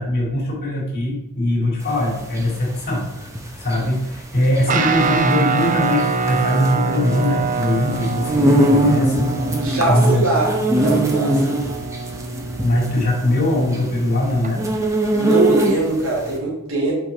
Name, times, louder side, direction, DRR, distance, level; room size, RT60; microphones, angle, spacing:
voice 1, 0.0-3.3 3.5-9.3 9.9-10.2 12.6-14.6, left 1 dB, 45° left, -3 dB, 3.0 m, -21 dB
sound 1, 1.9-16.1, right 1 dB, 15° right, 0.9 m, -22 dB
Guitar, 4.7-14.5, right 4 dB, 35° right, 0.5 m, -25 dB
voice 2, 9.6-11.6 15.1-16.9, right 2 dB, 65° right, -4 dB, 2.7 m, -21 dB
8.4 x 5.2 x 3.7 m, 0.88 s
head